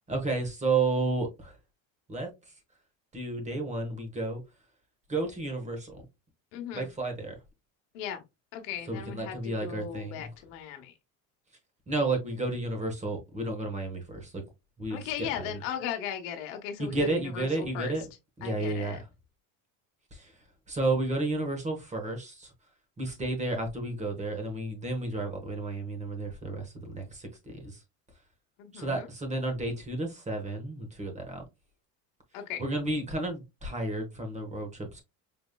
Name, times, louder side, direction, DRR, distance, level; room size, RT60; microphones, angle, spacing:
voice 1, 0.1-1.6 2.1-2.5 3.1-4.4 5.1-6.0 6.7-7.3 8.9-10.3 11.9-14.4 14.8-15.3 16.8-18.1 18.4-19.0 20.1-20.3 20.7-22.5 23.0-27.8 28.7-31.4 32.6-35.0, right 2 dB, 20° right, 1.1 m, -32 dB
voice 2, 6.5-6.9 7.9-8.2 8.5-10.9 14.9-17.9 18.4-19.0 28.6-29.1 32.3-32.6, left 8 dB, 90° left, 0.9 m, -37 dB
5.1 x 3.0 x 2.2 m
cardioid pair, 140°, 36 cm